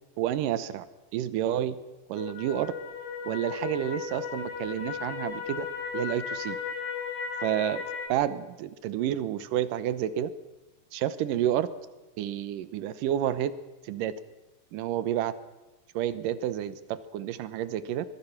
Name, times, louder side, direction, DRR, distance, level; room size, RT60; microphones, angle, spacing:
voice 1, 0.2-0.9 1.1-1.8 2.1-2.7 3.3-5.7 5.9-6.6 7.4-7.8 8.1-10.3 10.9-11.7 12.2-13.5 13.8-14.1 14.7-15.3 15.9-18.1, right 11 dB, 75° right, 13 dB, 2.0 m, -29 dB
sound 1, 2.2-8.1, left 6 dB, 55° left, 4.1 m, -35 dB
24.0 x 22.0 x 5.9 m, 1.1 s
omnidirectional pair, 5.1 m